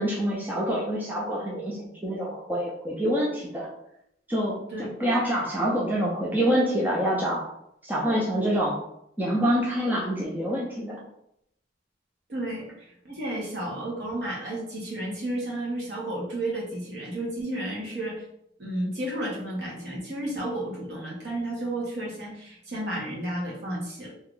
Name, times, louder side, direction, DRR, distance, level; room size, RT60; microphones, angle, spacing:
voice 1, 0.0-3.7 4.3-7.4 7.8-8.8 9.2-11.0, equal, 10° right, -4 dB, 0.4 m, -26 dB
voice 2, 12.3-18.2 18.6-24.1, right 1 dB, 60° right, -4 dB, 1.1 m, -32 dB
2.8 x 2.4 x 3.7 m, 0.77 s
head